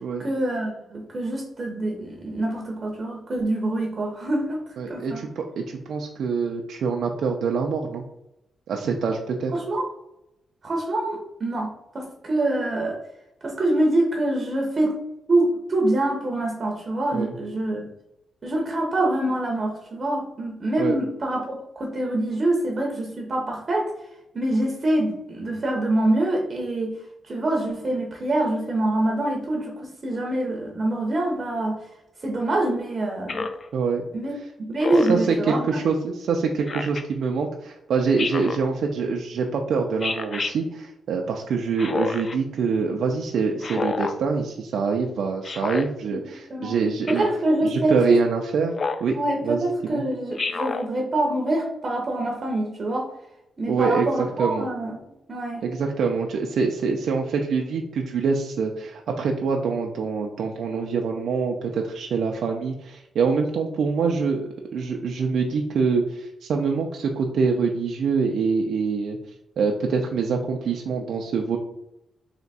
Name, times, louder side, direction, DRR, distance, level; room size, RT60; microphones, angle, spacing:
voice 1, 0.2-4.6 4.9-5.2 9.5-9.9 10.6-13.0 13.4-15.0 15.3-17.9 18.4-23.9 24.3-27.0 27.2-31.8 32.2-33.5 34.1-34.3 34.7-35.8 46.1-46.2 46.5-46.7 47.1-48.2 49.1-53.1 53.6-55.0 55.3-55.6, right 1 dB, 30° right, 0 dB, 0.7 m, -25 dB
voice 2, 4.8-8.0 8.7-9.5 17.1-17.3 20.8-21.0 33.7-34.1 35.1-47.3 47.6-48.7 49.0-49.2 49.4-50.0 53.7-54.7 55.6-69.2 69.6-71.6, right 5 dB, 70° right, 1 dB, 0.4 m, -25 dB
Speech synthesizer, 33.3-33.7 34.8-35.3 36.7-37.0 38.2-38.6 40.0-40.5 41.8-42.4 43.6-44.2 45.4-45.9 47.1-47.4 48.7-49.1 50.4-50.9, left 4 dB, 35° left, 0.3 m, -28 dB
3.4 x 2.8 x 4.0 m, 0.84 s
wide cardioid pair, 155°, 0 cm